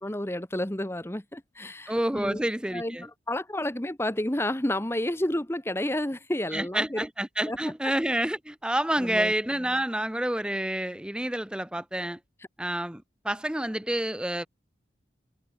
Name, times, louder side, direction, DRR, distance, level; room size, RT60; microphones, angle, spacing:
voice 1, 0.0-2.4 2.7-7.1 7.4-7.6 9.0-9.3, left 1 dB, 15° left, 1.2 m, -30 dB
voice 2, 1.9-3.1 6.5-12.2 12.6-14.5, right 1 dB, 5° right, 0.5 m, -28 dB
head